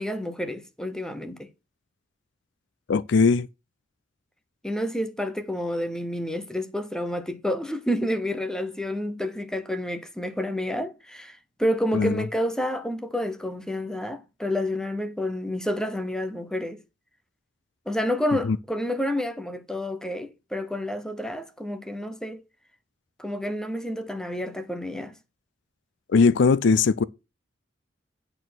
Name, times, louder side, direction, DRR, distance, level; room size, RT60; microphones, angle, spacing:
voice 1, 0.0-1.5 4.6-16.8 17.9-22.4 23.2-25.1, equal, 5° left, 0.8 m, -29 dB
voice 2, 2.9-3.5 11.9-12.2 18.4-18.6 26.1-27.0, left 4 dB, 65° left, 0.4 m, -19 dB
8.9 x 4.3 x 6.2 m
head